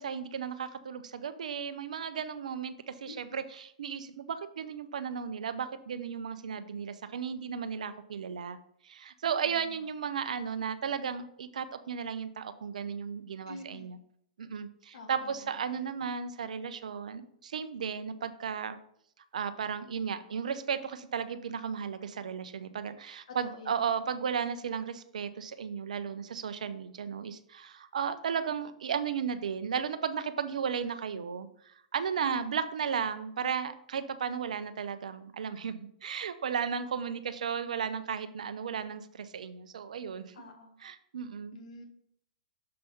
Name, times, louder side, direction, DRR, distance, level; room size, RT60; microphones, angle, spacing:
voice 1, 0.0-8.6 8.8-14.0 14.4-18.8 19.3-40.3 40.8-41.6, right 7 dB, 75° right, 12 dB, 0.7 m, -35 dB
voice 2, 3.1-3.4 9.5-9.6 13.5-13.9 14.9-15.5 23.5-23.7 32.2-32.5 40.3-40.7 41.5-41.8, left 2 dB, 65° left, 4 dB, 1.3 m, -47 dB
6.7 x 5.5 x 4.1 m, 0.68 s
hypercardioid pair, 115°, 4 cm